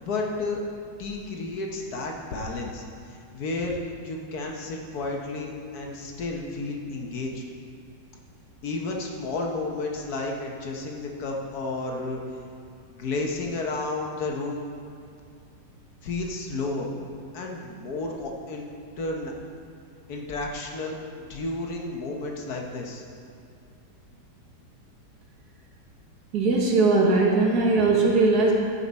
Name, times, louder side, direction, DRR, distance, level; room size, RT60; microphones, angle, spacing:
voice 1, 0.0-0.6 1.0-2.8 3.1-3.8 4.0-7.4 8.6-12.2 12.9-14.6 16.0-16.9 17.3-18.7 19.0-19.3 20.1-21.0 21.3-23.0, left 3 dB, 65° left, 0 dB, 1.5 m, -32 dB
voice 2, 26.3-28.5, right 3 dB, 65° right, -1 dB, 1.8 m, -20 dB
14.0 x 5.9 x 4.1 m, 2.5 s
omnidirectional pair, 1.9 m